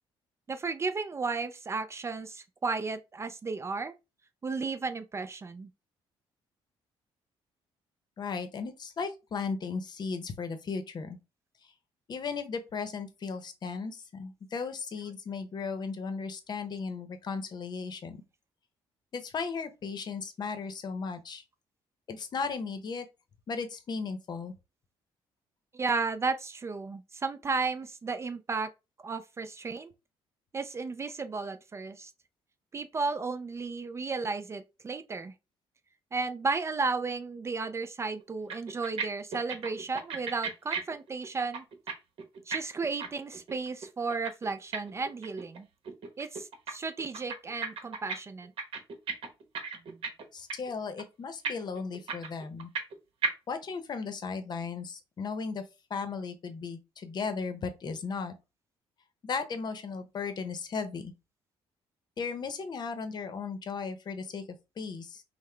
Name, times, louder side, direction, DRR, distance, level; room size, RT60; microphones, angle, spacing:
voice 1, 0.5-3.9 4.4-5.7 25.7-28.7 29.0-29.9 30.5-32.1 32.7-35.3 36.1-41.6 42.5-45.7 46.2-48.5, right 4 dB, 25° right, 0.4 m, -34 dB
voice 2, 8.2-11.2 12.1-18.2 19.1-21.4 22.1-23.1 23.5-24.5 50.3-52.7 53.5-55.6 55.9-58.3 59.2-61.1 62.2-65.2, left 5 dB, 45° left, 0.8 m, -36 dB
sound 1, 38.2-38.3 38.5-39.0 39.3-41.9 42.2-45.6 45.9-46.7 47.0-48.2 48.4-50.2 50.5-50.7 51.0-51.1 51.4-52.9 53.2-53.3, right 5 dB, 60° right, 1.0 m, -34 dB
5.6 x 2.1 x 3.3 m
cardioid pair, 115°, 10 cm